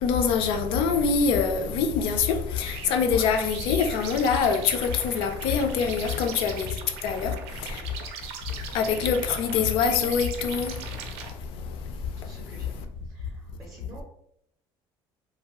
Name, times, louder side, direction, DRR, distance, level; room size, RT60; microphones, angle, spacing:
voice 1, 0.0-6.7 7.0-7.3 7.6-7.8 8.7-10.8, left 6 dB, 65° left, 0.4 m, -24 dB
sound 1, 2.6-11.3, right 6 dB, 90° right, 0.5 m, -40 dB
voice 2, 6.0-6.4 7.1-7.4 12.2-12.7 13.1-14.0, right 1 dB, 25° right, 0.5 m, -49 dB
2.7 x 2.1 x 2.9 m
cardioid pair, 165°, 10 cm